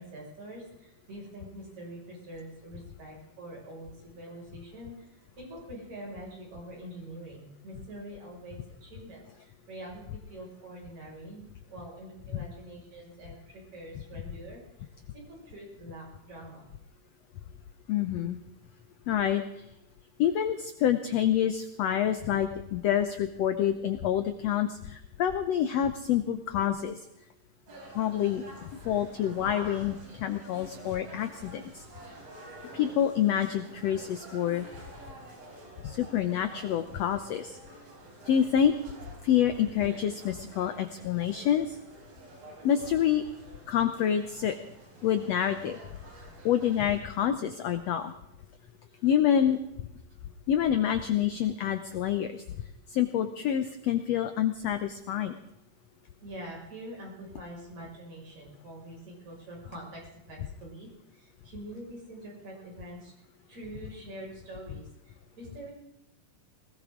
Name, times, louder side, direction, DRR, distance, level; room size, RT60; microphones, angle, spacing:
voice 1, 0.0-16.7 48.7-49.1 56.2-63.1 63.5-65.7, right 1 dB, 55° right, -2 dB, 7.1 m, -45 dB
voice 2, 17.9-18.4 19.1-19.6 20.2-27.0 27.9-31.8 32.7-34.7 35.8-37.6 38.3-38.8 39.2-41.8 42.6-43.2 43.7-44.6 45.0-45.8 46.4-48.1 49.0-49.6 50.5-52.4 52.9-55.4, left 10 dB, 80° left, 9 dB, 1.5 m, -27 dB
sound 1, 27.7-47.0, right 2 dB, 80° right, 6.3 m, -49 dB
20.5 x 18.0 x 3.8 m, 0.88 s
omnidirectional pair, 4.0 m